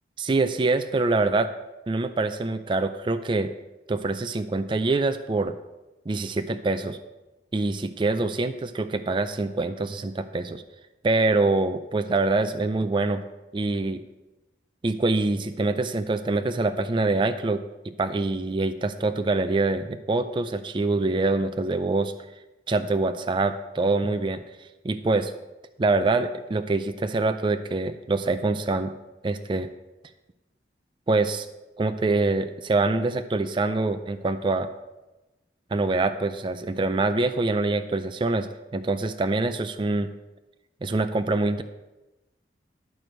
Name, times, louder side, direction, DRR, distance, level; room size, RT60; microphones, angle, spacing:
voice 1, 0.2-1.5 1.9-3.5 3.9-5.5 6.1-7.0 7.5-10.6 11.0-13.2 13.5-14.0 14.8-22.1 22.7-24.4 24.8-25.3 25.8-28.9 29.2-29.7 31.1-31.5 31.8-34.7 35.7-40.1 40.8-41.6, right 3 dB, 30° right, 9 dB, 0.4 m, -25 dB
12.0 x 4.6 x 6.4 m, 1.0 s
head